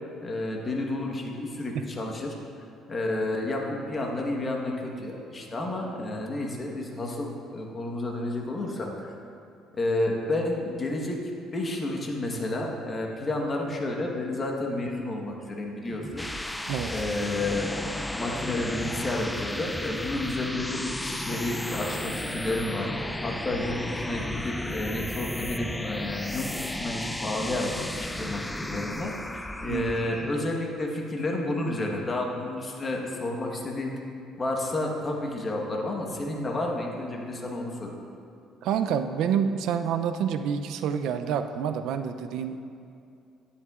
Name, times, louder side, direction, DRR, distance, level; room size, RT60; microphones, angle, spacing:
voice 1, 0.2-2.3 2.9-9.1 9.7-11.2 11.5-16.3 16.8-17.8 18.1-34.0 34.4-37.9, left 2 dB, 30° left, 0 dB, 1.2 m, -31 dB
sound 1, 15.9-30.4, left 1 dB, 5° left, 0.3 m, -34 dB
voice 2, 38.6-42.6, right 8 dB, 75° right, 9 dB, 0.4 m, -28 dB
11.0 x 9.7 x 2.4 m, 2.5 s
cardioid pair, 120°, 0 cm